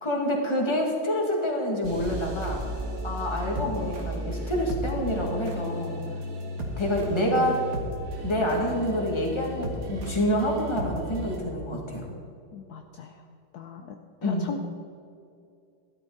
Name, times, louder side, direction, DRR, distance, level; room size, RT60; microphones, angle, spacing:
voice 1, 0.0-2.6 3.0-6.0 6.8-7.6 8.2-12.1 14.2-14.5, equal, 15° left, -1 dB, 1.8 m, -27 dB
sound 1, 1.8-11.4, equal, 80° right, 2.5 m, -34 dB
voice 2, 7.1-7.5 12.5-13.2 13.5-14.7, left 5 dB, 70° left, 5 dB, 0.9 m, -39 dB
13.5 x 12.5 x 4.0 m, 2.5 s
omnidirectional pair, 2.3 m